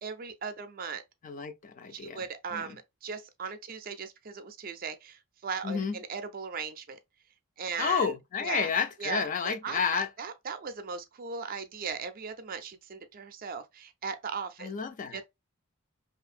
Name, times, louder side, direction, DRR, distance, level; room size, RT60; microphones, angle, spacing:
voice 1, 0.0-1.0 1.9-7.0 7.6-8.1 8.4-8.7 9.0-14.7 15.1-15.2, right 5 dB, 45° right, 0.4 m, -38 dB
voice 2, 1.2-2.2 2.5-2.7 5.6-6.0 7.8-10.1 14.6-15.2, left 6 dB, 35° left, 0.3 m, -31 dB
2.7 x 2.5 x 2.4 m
head